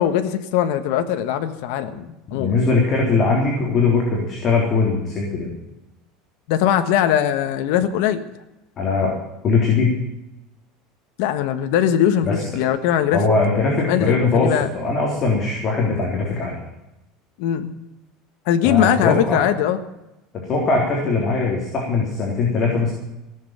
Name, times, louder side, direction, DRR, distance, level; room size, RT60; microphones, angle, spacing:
voice 1, 0.0-2.5 6.5-8.2 11.2-13.3 13.8-14.7 17.4-17.7 18.5-19.8, left 10 dB, 65° left, 8 dB, 1.4 m, -20 dB
voice 2, 2.3-5.5 8.8-9.1 9.4-9.9 12.2-12.4 13.1-16.6 18.6-19.4 20.5-22.9, left 3 dB, 30° left, -2 dB, 3.8 m, -20 dB
17.5 x 7.8 x 9.1 m, 0.94 s
cardioid pair, 155°, 0 cm